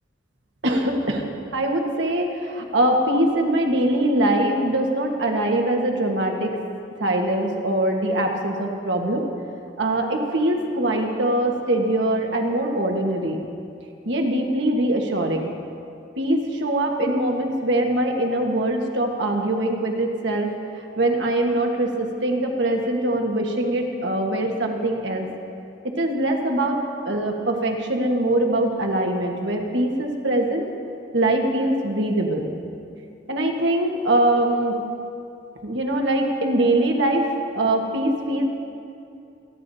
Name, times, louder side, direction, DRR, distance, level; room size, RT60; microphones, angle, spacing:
voice 1, 0.6-1.2 1.5-6.6 7.0-9.3 9.8-13.4 14.0-15.5 16.2-25.3 25.8-26.8 27.0-30.7 31.1-32.5 33.3-34.8 35.6-37.3 37.5-38.4, right 1 dB, 65° right, 2 dB, 1.4 m, -22 dB
26.5 x 10.5 x 2.8 m, 2.6 s
head